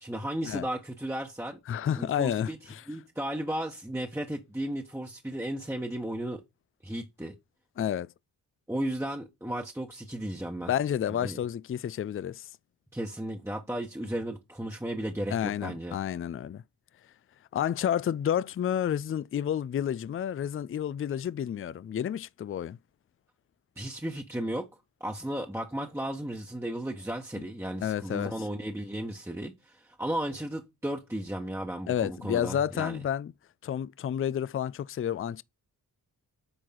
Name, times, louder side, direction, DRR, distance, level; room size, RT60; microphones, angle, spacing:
voice 1, 0.0-1.6 2.0-2.6 2.9-6.4 6.8-7.3 8.7-10.7 11.2-11.4 12.9-16.0 23.8-24.7 25.0-33.0, right 1 dB, 5° right, 1.2 m, -34 dB
voice 2, 1.7-2.8 7.8-8.1 10.7-12.5 15.3-16.6 17.5-22.8 27.8-28.3 31.9-33.3 33.6-35.4, left 9 dB, 35° left, 0.4 m, -30 dB
8.8 x 4.7 x 3.9 m
cardioid pair, 50°, 41 cm